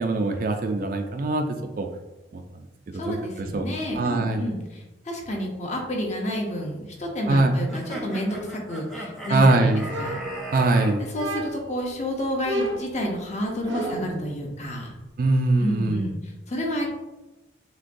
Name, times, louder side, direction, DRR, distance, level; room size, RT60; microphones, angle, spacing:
voice 1, 0.0-1.9 2.3-2.4 2.9-3.2 3.5-3.6 4.0-4.4 7.3-7.5 9.3-9.9 10.5-11.0 15.2-16.0, right 2 dB, 45° right, 5 dB, 0.3 m, -22 dB
voice 2, 2.9-10.2 11.0-14.9 15.6-16.9, equal, 35° left, 0 dB, 0.7 m, -30 dB
sound 1, 7.7-10.9, equal, ahead, 0.5 m, -36 dB
sound 2, 9.9-10.7 11.1-11.8 12.4-14.2, right 1 dB, 80° right, 0.7 m, -31 dB
6.2 x 2.2 x 2.6 m, 1.0 s
head